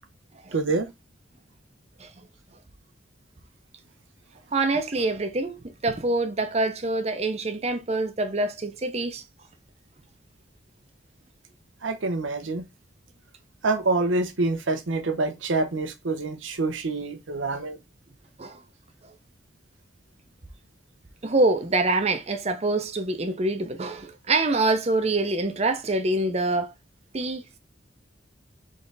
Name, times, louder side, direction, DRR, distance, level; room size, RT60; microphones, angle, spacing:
voice 1, 0.5-0.9 11.8-12.6 13.6-17.8, right 3 dB, 90° right, 0.8 m, -26 dB
voice 2, 4.5-9.2 18.4-18.6 21.2-26.7 27.1-27.6, right 2 dB, 35° right, 0.6 m, -25 dB
3.8 x 3.4 x 3.9 m
head